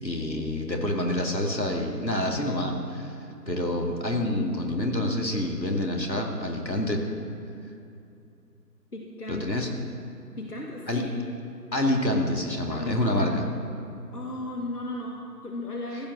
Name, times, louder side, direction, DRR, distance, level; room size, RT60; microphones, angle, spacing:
voice 1, 0.0-3.2 3.5-7.0 9.3-9.7 10.9-11.0 11.7-13.4, left 1 dB, 85° left, 1 dB, 2.3 m, -27 dB
voice 2, 8.9-9.5 10.4-11.1 12.7-13.6 14.1-16.1, left 1 dB, 65° left, 0 dB, 1.6 m, -35 dB
15.5 x 9.1 x 6.1 m, 2.6 s
figure-of-eight pair, 165°, 50 cm